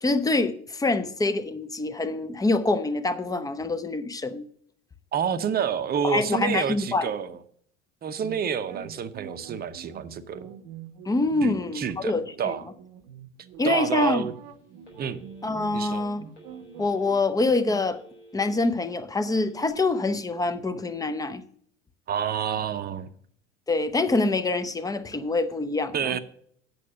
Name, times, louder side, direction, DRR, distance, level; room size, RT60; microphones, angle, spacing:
voice 1, 0.0-4.5 6.0-7.1 11.1-12.5 13.6-14.3 15.4-16.2 16.8-18.0 18.3-21.4 23.7-26.2, left 3 dB, 10° left, 0.7 m, -25 dB
voice 2, 5.1-7.4 8.0-10.5 11.4-12.7 13.6-14.3 15.0-15.2 15.7-16.0 22.1-23.1 25.9-26.2, right 8 dB, 25° right, 0.8 m, -28 dB
sound 1, 8.2-17.9, right 8 dB, 55° right, 0.9 m, -45 dB
Telephone, 14.4-14.5 14.8-15.6 16.3-17.1 17.5-18.6 19.3-19.7, right 1 dB, 80° left, 4.1 m, -51 dB
8.5 x 6.7 x 6.5 m
figure-of-eight pair, 70°, 35 cm